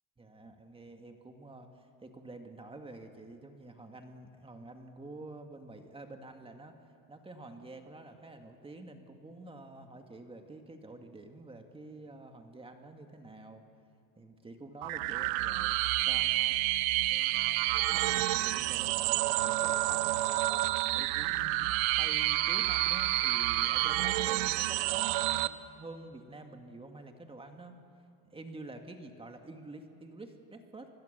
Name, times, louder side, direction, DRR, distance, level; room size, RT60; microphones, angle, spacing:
voice 1, 0.2-6.8 7.1-13.6 14.2-15.8 16.0-16.7 17.1-20.3 20.9-27.8 28.3-30.9, right 2 dB, 15° right, 4 dB, 2.1 m, -48 dB
sound 1, 14.8-25.5, right 18 dB, 70° right, 0.9 m, -29 dB
29.5 x 21.0 x 6.8 m, 2.4 s
supercardioid pair, 115°, 39 cm